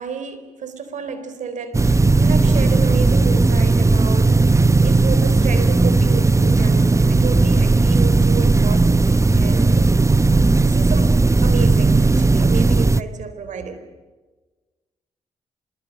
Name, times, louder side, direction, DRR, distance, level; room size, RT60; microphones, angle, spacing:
voice 1, 0.0-4.4 4.8-9.9 10.5-11.2 11.4-13.8, right 6 dB, 75° right, 4.0 m, -31 dB
sound 1, 1.7-13.0, right 3 dB, 25° right, 0.9 m, -16 dB
25.5 x 22.5 x 9.1 m
cardioid pair, 65°, 13 cm